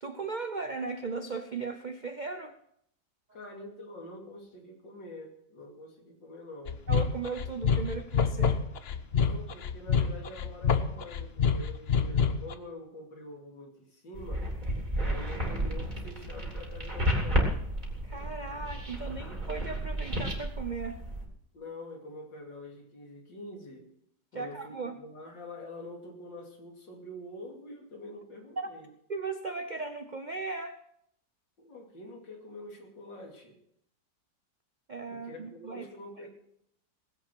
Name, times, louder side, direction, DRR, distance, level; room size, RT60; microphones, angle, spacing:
voice 1, 0.0-2.6 6.9-8.6 18.0-21.0 24.3-25.0 28.6-28.7 29.1-30.8 34.9-35.9, right 4 dB, 60° right, 8 dB, 0.4 m, -37 dB
voice 2, 3.3-6.8 9.1-14.5 15.0-17.6 21.5-23.9 24.3-28.9 31.6-33.6 35.1-36.3, left 1 dB, 85° left, 1 dB, 3.3 m, -46 dB
sound 1, 6.7-12.5, left 6 dB, 55° left, 0.7 m, -27 dB
sound 2, 14.1-21.3, equal, 25° right, 2.9 m, -32 dB
19.0 x 8.1 x 6.1 m, 0.74 s
omnidirectional pair, 1.9 m